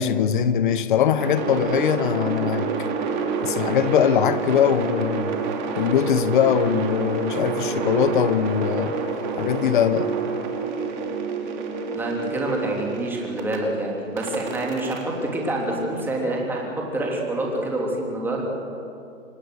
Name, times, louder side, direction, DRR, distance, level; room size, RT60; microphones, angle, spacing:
voice 1, 0.0-2.7 3.4-5.4 5.8-9.0 9.4-10.1, left 9 dB, 40° left, 1.1 m, -21 dB
sound 1, 1.2-13.6 14.2-16.3, right 4 dB, 35° right, 3.1 m, -28 dB
voice 2, 11.9-18.5, right 1 dB, 5° right, 3.1 m, -27 dB
26.0 x 20.0 x 6.5 m
hypercardioid pair, 155°, 39 cm